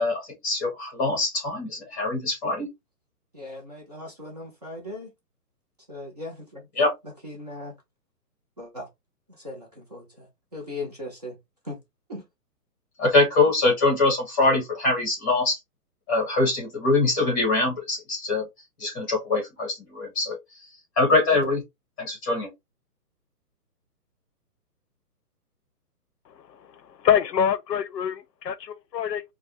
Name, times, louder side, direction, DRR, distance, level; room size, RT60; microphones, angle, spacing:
voice 1, 0.0-2.7 6.7-6.9 13.0-15.6 16.1-18.5 18.8-20.4 21.0-21.6 22.0-22.5, left 3 dB, 10° left, 0.8 m, -23 dB
voice 2, 3.3-5.1 5.9-6.7 7.2-7.7 8.6-8.9 9.4-10.3 10.5-11.4 11.6-11.8 12.1-12.2, left 2 dB, 25° right, 0.6 m, -38 dB
voice 3, 26.3-29.2, left 8 dB, 90° left, 0.7 m, -26 dB
3.2 x 2.2 x 2.6 m
hypercardioid pair, 165°, 48 cm